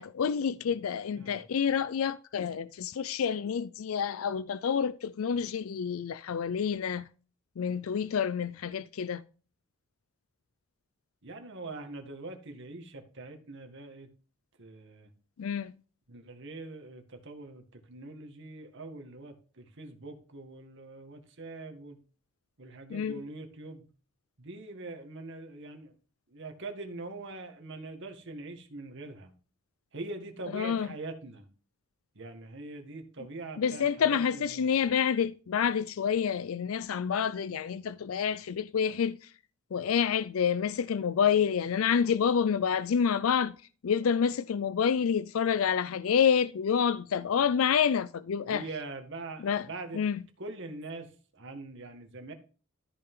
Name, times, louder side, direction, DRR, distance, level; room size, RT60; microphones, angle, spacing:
voice 1, 0.0-7.0 7.6-9.2 15.4-15.7 22.9-23.2 30.5-30.9 33.6-39.2 39.7-43.5 43.8-48.6 49.4-49.6 49.9-50.2, left 7 dB, 85° left, 0.4 m, -28 dB
voice 2, 11.2-14.1 14.6-15.1 16.1-22.0 22.6-23.8 24.4-25.9 26.3-29.3 29.9-31.5 32.2-34.7 48.4-50.0 50.4-52.3, right 2 dB, 65° right, 1.8 m, -43 dB
13.5 x 5.8 x 3.7 m
head